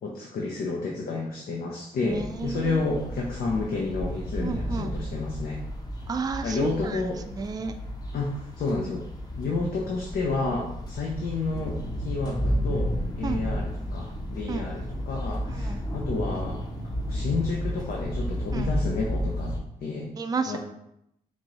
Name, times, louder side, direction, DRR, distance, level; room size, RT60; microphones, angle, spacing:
voice 1, 0.0-5.6 6.4-7.2 8.1-9.1 9.3-16.6 17.1-19.5 19.8-20.1 20.5-20.6, left 3 dB, 70° left, -2 dB, 0.6 m, -30 dB
voice 2, 2.0-2.9 4.4-4.9 6.1-7.0 7.3-7.8 13.2-13.4 14.5-14.7 15.5-15.8 18.5-18.7 20.2-20.6, right 4 dB, 25° right, 7 dB, 0.3 m, -32 dB
sound 1, 2.1-19.6, equal, 25° left, 0.7 m, -32 dB
4.5 x 2.6 x 3.0 m, 0.78 s
cardioid pair, 70°, 16 cm